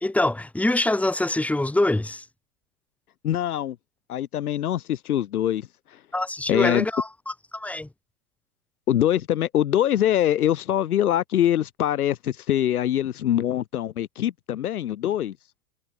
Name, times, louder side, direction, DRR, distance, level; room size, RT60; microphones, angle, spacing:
voice 1, 0.0-2.2 6.1-7.1 7.5-7.9, left 2 dB, 5° left, 1.6 m, -24 dB
voice 2, 3.2-3.8 4.1-6.0 6.5-6.9 8.9-15.4, left 11 dB, 80° left, 0.8 m, -23 dB
hypercardioid pair, 100°, 44 cm